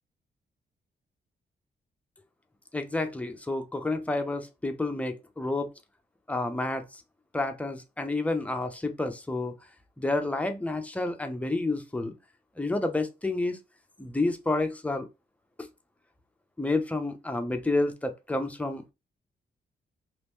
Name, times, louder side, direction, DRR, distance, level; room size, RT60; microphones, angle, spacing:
voice 1, 2.7-5.7 6.3-7.0 7.3-9.5 10.0-12.1 12.6-13.6 14.0-15.1 15.6-15.7 16.6-18.9, left 2 dB, 10° left, 0.4 m, -29 dB
3.0 x 2.8 x 3.5 m
wide cardioid pair, 175°, 18 cm